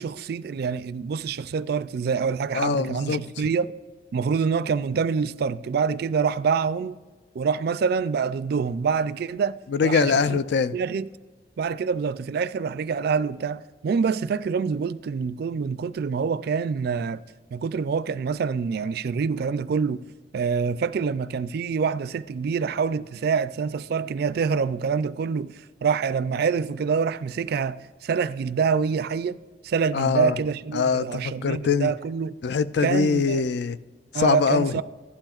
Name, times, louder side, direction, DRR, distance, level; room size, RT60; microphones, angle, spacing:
voice 1, 0.0-3.7 4.1-7.0 7.4-9.6 9.8-10.2 10.7-11.1 11.6-17.2 17.5-20.0 20.3-25.5 25.8-29.4 29.6-32.3 32.8-33.4 34.1-34.8, right 5 dB, 60° right, 0.3 m, -26 dB
voice 2, 2.5-3.2 9.7-10.8 29.9-30.4 30.7-31.9 32.4-33.8 34.1-34.7, left 5 dB, 65° left, 0.4 m, -23 dB
15.0 x 11.5 x 2.4 m
head